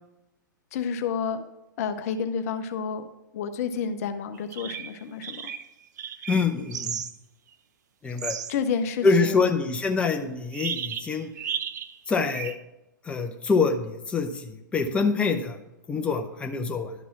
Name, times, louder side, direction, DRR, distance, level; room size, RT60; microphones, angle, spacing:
voice 1, 0.7-1.4 1.8-3.0 3.3-5.5 8.5-9.5, left 6 dB, 45° left, 8 dB, 0.7 m, -30 dB
sound 1, 4.3-4.9 5.2-7.1 7.5-7.6 8.1-8.6 10.5-12.0 12.3-12.5, right 8 dB, 60° right, 0.5 m, -34 dB
voice 2, 6.3-7.0 8.0-8.4 9.0-11.3 12.1-12.5 13.0-15.6 15.9-16.9, left 4 dB, 10° left, 4 dB, 0.6 m, -25 dB
11.5 x 4.1 x 5.9 m, 0.93 s
figure-of-eight pair, 105°, 11 cm